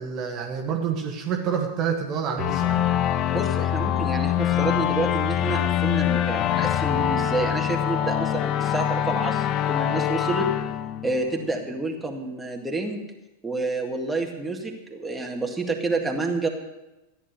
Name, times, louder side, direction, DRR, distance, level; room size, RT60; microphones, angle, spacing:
voice 1, 0.0-2.9, right 7 dB, 35° right, 2 dB, 1.5 m, -28 dB
sound 1, 2.4-11.7, left 11 dB, 35° left, 0.6 m, -24 dB
voice 2, 3.3-10.5 11.0-13.0 13.4-16.5, right 2 dB, 5° right, 0 dB, 2.0 m, -29 dB
14.0 x 9.9 x 6.5 m, 1.0 s
figure-of-eight pair, 90°, 0 cm